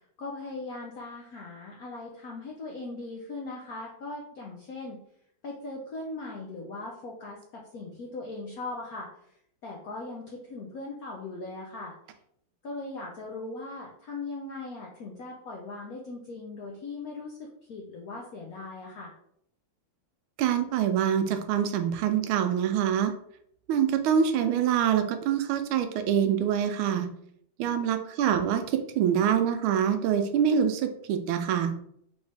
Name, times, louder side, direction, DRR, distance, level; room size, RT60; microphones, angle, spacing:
voice 1, 0.2-5.0 5.4-9.1 9.6-11.9 12.6-19.1 28.2-28.4, left 3 dB, 75° left, -1 dB, 0.8 m, -39 dB
voice 2, 20.4-23.1 23.7-27.1 27.6-28.6 28.9-31.7, right 8 dB, 80° right, 8 dB, 1.3 m, -25 dB
3.9 x 3.5 x 3.3 m, 0.70 s
omnidirectional pair, 2.4 m